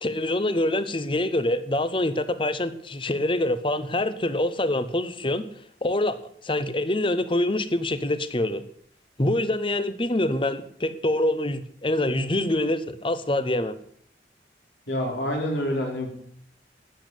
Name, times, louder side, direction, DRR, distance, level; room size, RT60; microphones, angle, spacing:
voice 1, 0.0-5.4 5.8-6.2 6.4-8.6 9.2-13.7, left 1 dB, 30° left, 13 dB, 0.9 m, -25 dB
voice 2, 14.9-16.1, left 1 dB, 80° left, 0 dB, 5.1 m, -27 dB
12.5 x 8.6 x 8.3 m, 0.63 s
head